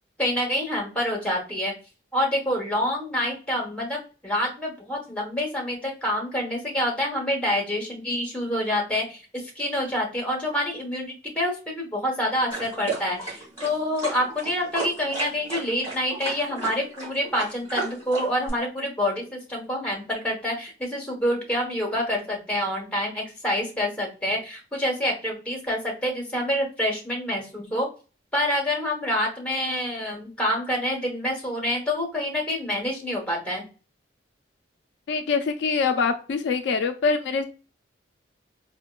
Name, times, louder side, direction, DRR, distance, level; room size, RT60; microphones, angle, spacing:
voice 1, 0.2-1.7 2.1-27.9 28.3-33.6, left 1 dB, 5° left, -1 dB, 0.9 m, -27 dB
sound 1, 12.5-18.5, right 2 dB, 15° right, 1.7 m, -33 dB
voice 2, 35.1-37.4, left 5 dB, 65° left, 7 dB, 0.3 m, -24 dB
4.3 x 2.1 x 2.2 m, 0.34 s
head